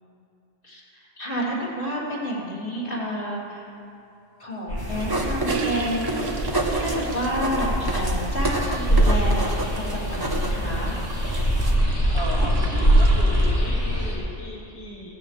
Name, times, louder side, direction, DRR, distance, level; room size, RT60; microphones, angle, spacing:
voice 1, 0.6-3.6 4.4-10.9, equal, 45° left, -6 dB, 3.3 m, -30 dB
sound 1, 4.7-14.1, equal, 65° left, 3.6 m, -23 dB
sound 2, 4.8-11.8, right 2 dB, 20° right, 1.0 m, -31 dB
sound 3, 4.9-13.6, right 4 dB, 75° right, 1.4 m, -36 dB
voice 2, 12.1-15.1, left 1 dB, 20° left, -5 dB, 1.3 m, -36 dB
17.0 x 16.0 x 3.3 m, 2.7 s
omnidirectional pair, 1.3 m